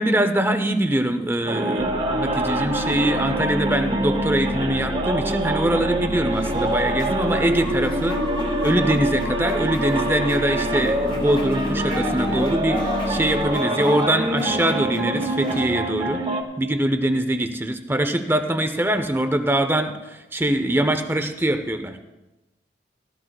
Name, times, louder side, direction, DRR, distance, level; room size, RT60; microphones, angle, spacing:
voice 1, 0.0-8.2 8.6-16.2 16.6-22.0, right 1 dB, 10° right, 8 dB, 0.6 m, -23 dB
sound 1, 1.5-16.4, right 1 dB, 30° right, 1.0 m, -25 dB
sound 2, 1.8-13.5, left 1 dB, 75° left, 0.5 m, -34 dB
sound 3, 6.3-15.7, left 2 dB, 25° left, 1.2 m, -36 dB
16.5 x 13.0 x 2.4 m, 1.0 s
head